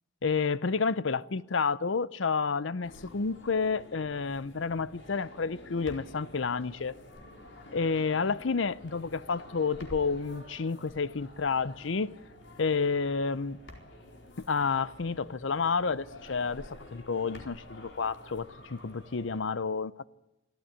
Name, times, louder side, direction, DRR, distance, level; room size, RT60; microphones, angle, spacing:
voice 1, 0.2-6.9 7.7-12.1 12.6-13.6 14.5-19.9, left 5 dB, 85° left, 0.7 m, -30 dB
sound 1, 2.8-19.4, left 1 dB, 65° left, 4.4 m, -50 dB
24.5 x 14.5 x 9.9 m
head